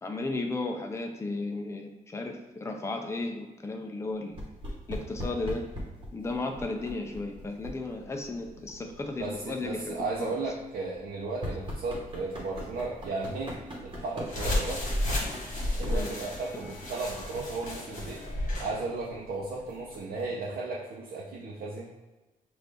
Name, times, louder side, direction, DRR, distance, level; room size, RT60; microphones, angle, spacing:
voice 1, 0.0-4.4 4.9-5.7 6.1-10.3 15.8-16.1, left 2 dB, 20° left, 3 dB, 0.5 m, -34 dB
sound 1, 4.3-20.4, equal, 30° right, 1.2 m, -43 dB
voice 2, 9.2-13.5 13.8-14.9 15.8-18.2 18.6-21.9, right 3 dB, 85° right, -5 dB, 0.8 m, -35 dB
sound 2, 14.3-18.7, left 1 dB, 55° left, 1.5 m, -32 dB
6.2 x 2.6 x 3.4 m, 1.1 s
wide cardioid pair, 120°, 15 cm